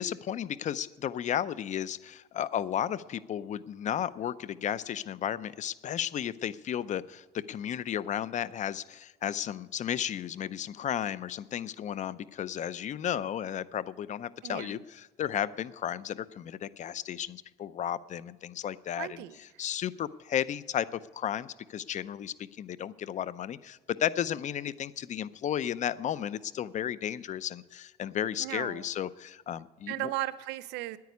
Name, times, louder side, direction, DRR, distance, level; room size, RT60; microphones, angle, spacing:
voice 1, 0.0-30.1, left 10 dB, 45° left, 18 dB, 0.5 m, -34 dB
voice 2, 14.4-14.8 19.0-19.3 28.4-28.8 29.9-31.0, right 16 dB, 90° right, 16 dB, 0.6 m, -36 dB
9.6 x 9.3 x 9.4 m, 1.2 s
cardioid pair, 110°, 17 cm